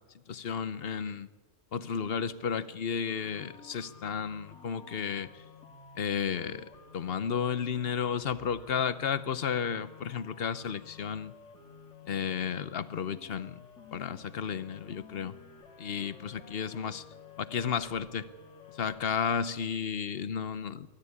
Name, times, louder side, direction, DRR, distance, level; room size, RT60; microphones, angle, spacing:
voice 1, 0.3-1.3 1.7-5.3 6.0-11.3 12.1-13.5 13.9-15.4 15.8-17.0 17.4-18.3 18.8-20.9, left 7 dB, 55° left, 16 dB, 1.0 m, -33 dB
sound 1, 3.1-19.0, left 6 dB, 75° left, 2.4 m, -53 dB
21.5 x 13.5 x 9.9 m, 1.2 s
omnidirectional pair, 1.2 m